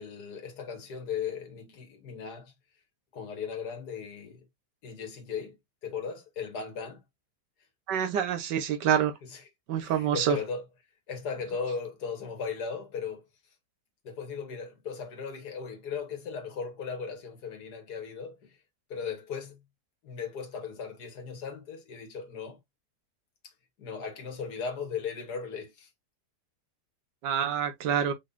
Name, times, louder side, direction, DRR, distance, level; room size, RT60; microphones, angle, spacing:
voice 1, 0.0-2.5 3.1-4.4 4.8-5.6 5.8-7.0 9.2-9.4 9.8-10.6 11.1-13.2 14.0-18.5 18.9-19.6 20.0-22.6 23.8-25.9, left 6 dB, 70° left, 1.9 m, -37 dB
voice 2, 7.9-9.1 9.7-10.4 27.2-28.1, right 8 dB, 85° right, 1.5 m, -26 dB
4.8 x 3.9 x 2.6 m
omnidirectional pair, 1.8 m